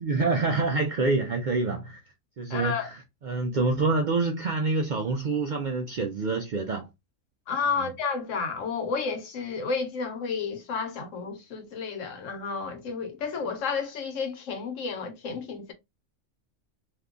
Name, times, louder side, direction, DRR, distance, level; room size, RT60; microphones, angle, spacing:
voice 1, 0.0-2.0 2.4-6.9 7.8-7.9, right 3 dB, 65° right, 0.5 m, -27 dB
voice 2, 2.5-2.9 7.5-15.7, left 5 dB, 80° left, 1.2 m, -31 dB
2.8 x 2.2 x 3.6 m
omnidirectional pair, 1.3 m